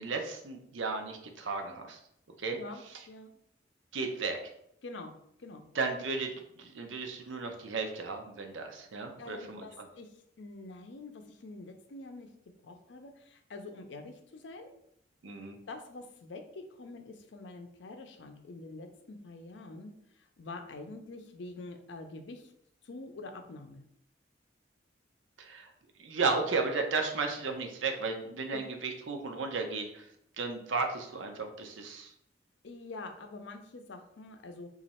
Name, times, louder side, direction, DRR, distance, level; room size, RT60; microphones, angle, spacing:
voice 1, 0.0-2.0 2.4-2.6 3.9-4.4 5.7-6.3 6.6-9.9 15.2-15.6 25.4-25.7 26.0-30.1 30.4-32.1, right 4 dB, 80° right, 5 dB, 0.6 m, -34 dB
voice 2, 2.5-3.3 4.8-5.1 5.4-5.6 9.2-10.1 10.4-12.3 12.6-14.7 15.7-19.9 20.4-22.5 22.8-23.8 28.5-28.6 32.6-34.7, left 2 dB, 70° left, 6 dB, 0.5 m, -46 dB
3.0 x 2.4 x 4.2 m, 0.73 s
head